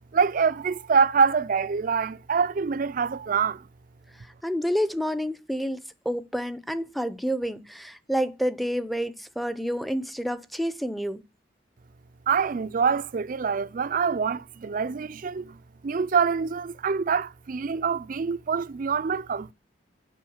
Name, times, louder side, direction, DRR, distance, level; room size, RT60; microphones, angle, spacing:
voice 1, 0.1-3.7 12.3-19.5, right 5 dB, 45° right, 0.4 m, -25 dB
voice 2, 4.4-11.2, equal, ahead, 0.6 m, -29 dB
7.6 x 5.3 x 7.1 m
head